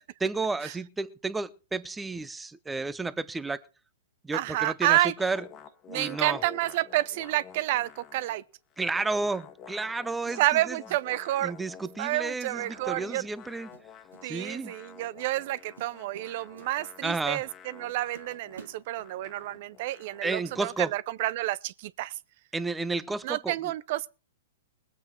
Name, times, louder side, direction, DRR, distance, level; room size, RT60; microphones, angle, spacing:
voice 1, 0.2-3.6 4.2-5.4 5.9-6.4 8.8-10.4 10.7-10.8 11.4-13.7 14.2-14.7 17.0-17.4 20.2-20.9 22.5-23.6, right 3 dB, 10° right, 0.8 m, -31 dB
voice 2, 4.3-5.1 5.9-8.4 10.4-11.5 12.0-13.3 14.2-22.2 23.2-24.1, right 16 dB, 50° right, 0.7 m, -29 dB
sound 1, 5.2-8.5 8.7-12.0 12.5-20.5, left 7 dB, 30° left, 1.6 m, -50 dB
sound 2, 13.3-14.3 14.5-14.8 15.3-15.5 15.8-17.3 17.7-17.8 18.1-19.5, right 6 dB, 80° right, 1.7 m, -51 dB
20.5 x 8.4 x 4.5 m
hypercardioid pair, 120°, 0 cm